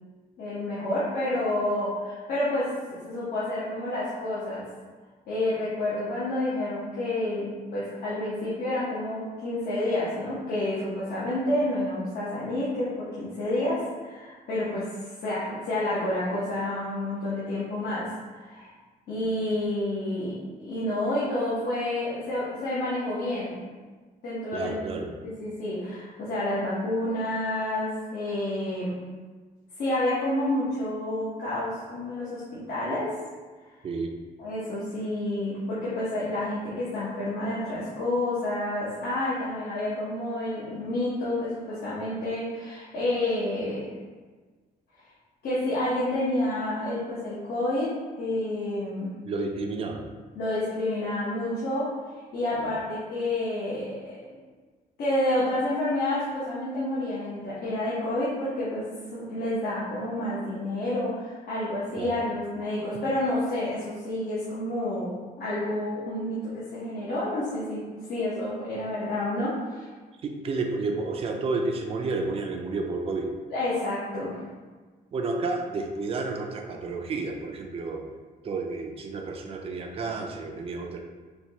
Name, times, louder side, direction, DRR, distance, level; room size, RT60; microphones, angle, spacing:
voice 1, 0.4-4.6 5.3-14.9 15.2-18.1 18.3-18.7 19.1-23.6 24.2-24.8 25.2-29.0 29.8-33.1 34.4-43.9 45.4-47.9 48.2-49.1 50.3-51.9 52.1-54.2 55.0-67.8 68.1-69.9 73.5-74.4, left 1 dB, 70° left, -10 dB, 1.0 m, -29 dB
voice 2, 24.5-25.1 33.8-34.1 49.2-50.1 52.6-52.7 62.0-62.1 70.2-73.3 75.1-78.0 78.4-81.0, right 3 dB, 35° right, 2 dB, 0.4 m, -31 dB
4.5 x 2.3 x 2.8 m, 1.4 s
cardioid pair, 125°, 16 cm